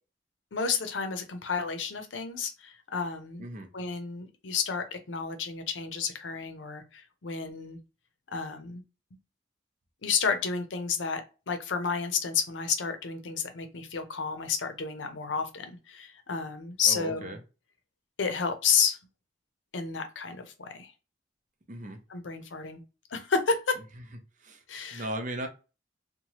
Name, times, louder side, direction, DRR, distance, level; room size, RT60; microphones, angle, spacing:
voice 1, 0.5-3.4 3.7-7.8 8.3-8.8 10.0-11.2 11.5-17.4 18.2-19.0 19.7-20.9 22.1-22.8 23.1-23.8 24.7-25.1, left 6 dB, 85° left, 7 dB, 0.6 m, -31 dB
voice 2, 16.9-17.4 21.7-22.0 24.4-24.6 24.9-25.5, right 1 dB, 45° right, 6 dB, 0.6 m, -36 dB
2.8 x 2.2 x 2.9 m, 0.31 s
head